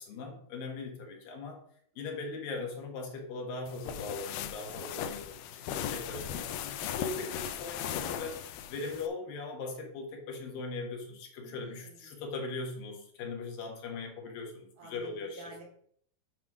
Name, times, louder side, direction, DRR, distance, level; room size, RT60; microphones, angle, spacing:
voice 1, 0.0-1.6 2.0-15.5, left 3 dB, 70° left, 1 dB, 3.0 m, -40 dB
sound 1, 3.7-9.1, left 9 dB, 90° left, 2.6 m, -38 dB
voice 2, 5.8-6.1 11.4-12.1 14.8-15.6, right 3 dB, 80° right, -2 dB, 4.9 m, -52 dB
9.4 x 3.4 x 6.0 m, 0.64 s
omnidirectional pair, 4.3 m